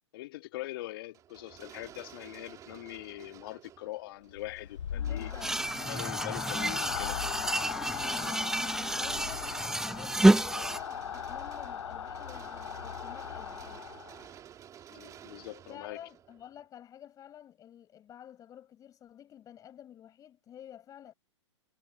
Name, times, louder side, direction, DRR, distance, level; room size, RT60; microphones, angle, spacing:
voice 1, 0.1-5.3 5.8-7.2 14.9-16.1, left 17 dB, 50° left, 1.8 m, -42 dB
sound 1, 1.1-16.7, right 10 dB, 20° right, 2.5 m, -52 dB
sound 2, 4.3-14.3, left 8 dB, 70° left, 0.8 m, -38 dB
voice 2, 4.9-5.7 6.2-6.4 8.1-13.9 15.7-21.1, left 10 dB, 20° left, 7.3 m, -50 dB
sound 3, 5.4-10.8, right 1 dB, 5° right, 0.9 m, -28 dB
hypercardioid pair, 120°, 16 cm